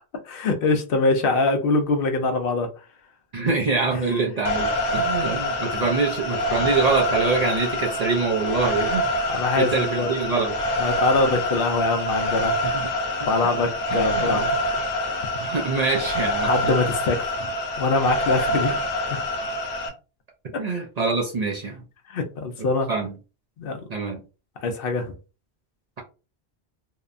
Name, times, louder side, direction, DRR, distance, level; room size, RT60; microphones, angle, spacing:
voice 1, 0.2-2.7 3.9-4.0 5.8-5.9 6.6-6.7 9.2-10.1 10.8-12.6 13.2-14.8 16.4-17.5 17.8-18.9 20.5-20.6 22.1-22.9 23.6-23.9 24.6-25.1, left 3 dB, 65° left, 0.7 m, -23 dB
voice 2, 3.3-9.1 9.6-10.6 11.3-11.4 12.6-12.9 13.2-13.3 13.9-14.5 15.4-16.7 20.6-21.8 22.6-23.1 23.9-24.2, right 4 dB, 50° right, 0.5 m, -25 dB
sound 1, 4.5-19.9, left 1 dB, 85° left, 0.9 m, -26 dB
2.8 x 2.1 x 2.4 m
omnidirectional pair, 1.1 m